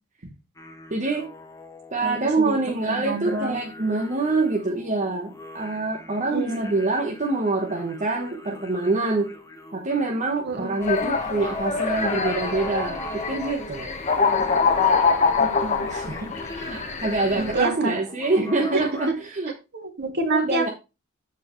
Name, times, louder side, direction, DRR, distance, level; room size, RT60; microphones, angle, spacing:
sound 1, 0.6-19.1, left 2 dB, 15° left, 1.2 m, -40 dB
voice 1, 0.9-1.3 1.9-9.3 9.7-13.9 15.9-19.5 20.3-20.7, right 3 dB, 35° right, 0 dB, 1.1 m, -25 dB
voice 2, 2.0-2.6 2.9-3.6 6.3-6.8 10.4-10.8 15.4-16.2 17.3-18.0 18.7-19.1 19.7-20.7, right 3 dB, 55° right, 4 dB, 2.0 m, -28 dB
sound 2, 10.8-17.6, left 5 dB, 35° left, 1.3 m, -24 dB
13.5 x 4.5 x 3.1 m, 0.27 s
head